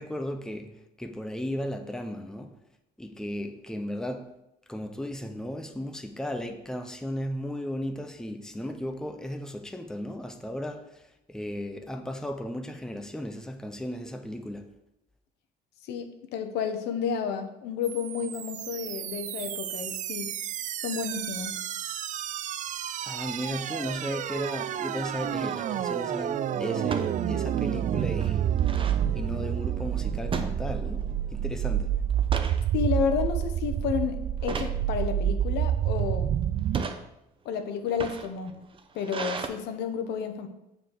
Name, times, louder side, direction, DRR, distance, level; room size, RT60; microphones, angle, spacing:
voice 1, 0.0-2.5 3.0-4.3 4.7-11.0 11.3-14.7 23.0-28.5 29.1-32.0, equal, 5° left, 0.7 m, -35 dB
voice 2, 15.8-20.3 20.8-21.5 32.7-34.2 34.4-36.4 37.4-38.5 38.9-40.5, left 7 dB, 85° left, 1.0 m, -31 dB
sound 1, 17.8-36.8, right 10 dB, 45° right, 0.4 m, -29 dB
sound 2, 25.1-25.4 26.8-27.1 27.6-27.7 28.0-29.0 30.3-31.1 31.4-31.7 32.1-32.6 33.2-33.5 34.4-34.8 35.6-36.0 36.6-37.0 37.8-39.5, right 5 dB, 30° right, 0.7 m, -35 dB
7.2 x 4.1 x 6.5 m
cardioid pair, 110°, 17 cm